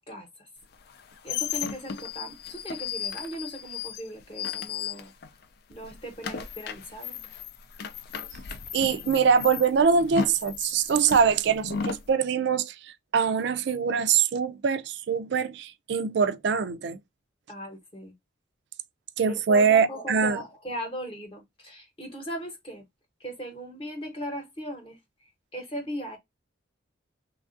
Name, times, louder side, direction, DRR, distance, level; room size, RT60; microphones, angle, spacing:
sound 1, 0.8-5.4 5.7-12.1, left 6 dB, 50° left, 0.4 m, -35 dB
voice 1, 1.2-5.1 5.7-7.2 17.5-18.1 19.3-22.8 23.2-25.0 25.5-26.2, equal, 25° left, 0.9 m, -38 dB
voice 2, 8.7-17.0 19.2-20.4, right 6 dB, 55° right, 0.3 m, -23 dB
3.2 x 2.4 x 2.4 m
head